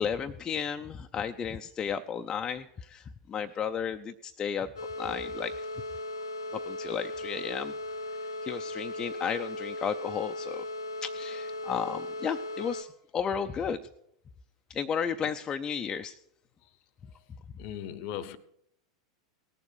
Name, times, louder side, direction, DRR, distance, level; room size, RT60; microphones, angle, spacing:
voice 1, 0.0-4.7 5.0-5.5 6.6-7.7 8.4-10.6 11.0-12.9 13.1-13.8 14.7-16.1, left 7 dB, 25° left, 0.5 m, -33 dB
sound 1, 4.8-12.8, left 2 dB, 75° left, 0.9 m, -37 dB
voice 2, 17.6-18.4, left 10 dB, 50° left, 0.8 m, -38 dB
18.0 x 7.1 x 6.1 m
figure-of-eight pair, 90°, 3 cm